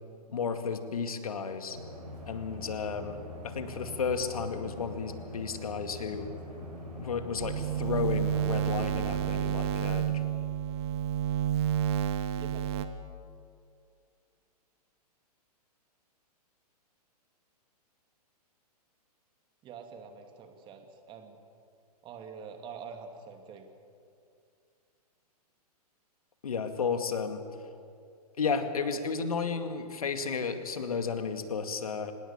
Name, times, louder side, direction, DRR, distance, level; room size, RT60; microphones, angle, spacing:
voice 1, 0.3-1.8 2.3-3.2 3.4-6.3 7.0-10.2 26.4-27.4 28.4-32.1, left 5 dB, 65° left, 8 dB, 2.3 m, -33 dB
sound 1, 1.7-9.3, left 1 dB, 80° right, 6.3 m, -43 dB
sound 2, 7.4-12.8, right 10 dB, 40° right, 1.7 m, -30 dB
voice 2, 19.6-21.4 22.0-23.7, right 6 dB, 25° right, 5 dB, 2.6 m, -45 dB
25.5 x 20.0 x 7.3 m, 2.4 s
figure-of-eight pair, 115°, 20 cm